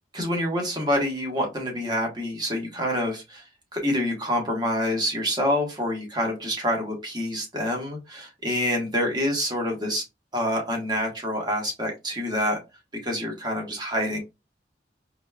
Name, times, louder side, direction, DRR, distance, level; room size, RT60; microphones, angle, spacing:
voice 1, 0.1-3.4 3.7-10.0 10.3-12.6 13.0-14.2, equal, 25° right, 1.2 m, -27 dB
4.1 x 3.3 x 2.3 m
head